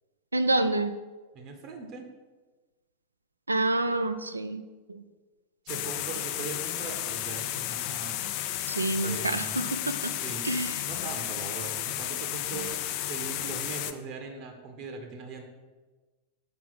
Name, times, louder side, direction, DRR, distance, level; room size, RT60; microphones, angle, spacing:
voice 1, 0.3-1.0 3.5-4.6 4.9-5.0 8.7-10.1 10.4-10.7, right 2 dB, 80° right, 10 dB, 0.4 m, -27 dB
voice 2, 1.3-2.0 5.6-8.2 9.0-9.6 10.1-10.5 10.8-15.4, right 4 dB, 40° right, 4 dB, 0.9 m, -40 dB
sound 1, 5.7-13.9, left 12 dB, 45° left, 0.4 m, -33 dB
5.9 x 4.6 x 5.6 m, 1.3 s
figure-of-eight pair, 90°, 0 cm